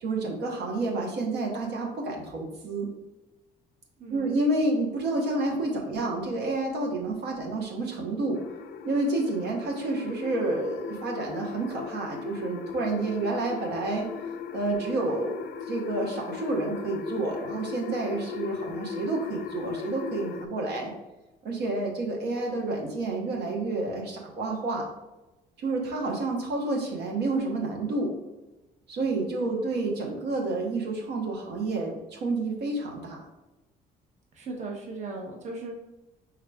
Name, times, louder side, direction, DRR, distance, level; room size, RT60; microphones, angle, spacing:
voice 1, 0.0-2.9 4.1-8.4 8.8-14.1 14.5-15.4 15.7-20.9 21.4-24.9 25.6-28.1 28.9-33.2, right 2 dB, 80° right, 0 dB, 0.9 m, -29 dB
voice 2, 4.0-4.3 34.3-35.8, right 3 dB, 45° right, 0 dB, 0.8 m, -37 dB
sound 1, 8.3-20.5, left 7 dB, 70° left, 0.4 m, -38 dB
4.8 x 3.6 x 2.2 m, 1.0 s
cardioid pair, 110°, 17 cm